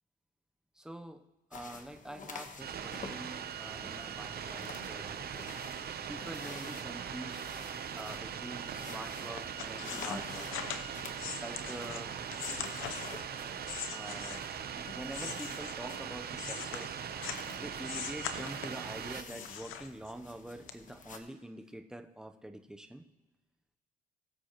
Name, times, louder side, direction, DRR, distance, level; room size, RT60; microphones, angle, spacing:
voice 1, 0.8-1.2 1.5-5.2 6.1-7.4 7.9-10.5 11.4-12.1 13.9-14.4 14.8-17.0 17.6-23.0, right 1 dB, 5° right, 6 dB, 0.8 m, -45 dB
sound 1, 1.5-21.2, left 4 dB, 40° left, 1.2 m, -50 dB
sound 2, 2.6-19.2, right 8 dB, 50° right, 0.8 m, -41 dB
sound 3, 9.4-14.6 15.1-17.5 17.8-18.9 19.3-20.3 20.7-20.8, left 8 dB, 90° left, 0.8 m, -42 dB
21.0 x 7.7 x 3.1 m, 1.2 s
cardioid pair, 90°, 20 cm